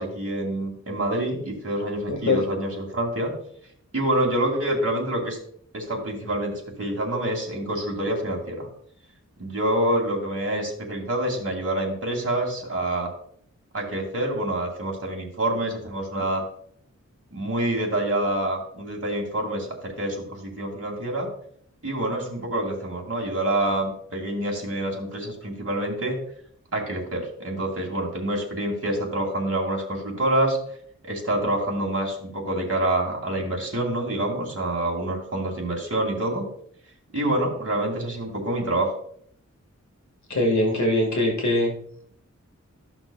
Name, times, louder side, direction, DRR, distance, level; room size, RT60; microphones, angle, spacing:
voice 1, 0.0-3.4 3.9-5.4 5.7-8.7 9.4-13.1 13.7-16.4 17.3-21.3 21.8-26.2 26.7-30.6 31.0-36.5 37.1-38.9, right 1 dB, 50° right, 0 dB, 2.4 m, -27 dB
voice 2, 2.1-2.4 40.3-41.7, left 1 dB, 70° left, 1 dB, 1.8 m, -22 dB
13.5 x 5.9 x 2.4 m, 0.63 s
wide cardioid pair, 65°, 29 cm